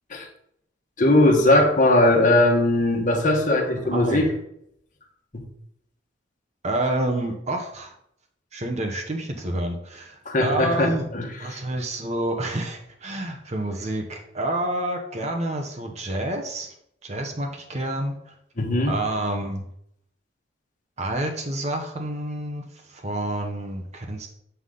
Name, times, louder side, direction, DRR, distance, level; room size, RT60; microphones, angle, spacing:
voice 1, 1.0-4.3 5.3-5.4 10.2-11.6 18.6-18.9, left 1 dB, 45° left, 2 dB, 1.3 m, -19 dB
voice 2, 3.9-4.3 6.6-7.9 8.5-11.0 11.4-16.7 17.0-18.3 18.9-19.7 21.0-24.3, right 1 dB, 40° right, 2 dB, 0.9 m, -28 dB
8.0 x 5.6 x 3.8 m, 0.73 s
head